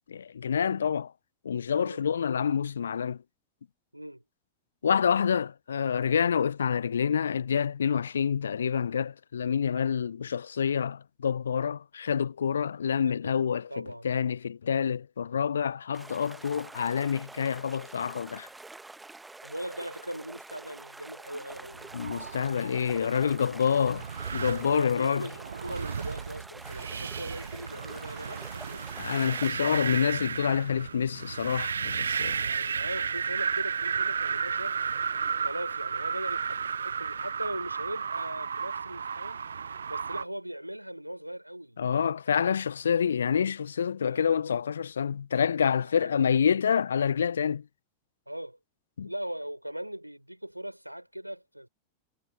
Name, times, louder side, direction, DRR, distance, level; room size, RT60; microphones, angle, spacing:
voice 1, 0.1-1.1 1.4-3.2 4.8-18.5 21.9-24.0 24.3-25.3 29.0-32.4 41.8-47.6 49.0-49.1, left 7 dB, 70° left, 0.6 m, -27 dB
voice 2, 3.9-4.2 13.0-13.3 13.7-14.1 19.4-21.9 23.4-24.0 24.7-28.9 32.3-34.9 35.4-41.8 44.0-44.5 46.0-46.3 48.3-48.6 49.0-51.7, equal, 90° right, 5.4 m, -40 dB
sound 1, 15.9-29.5, right 2 dB, 10° right, 1.3 m, -47 dB
sound 2, 21.7-40.2, right 6 dB, 70° right, 0.4 m, -33 dB
figure-of-eight pair, 90°, 0 cm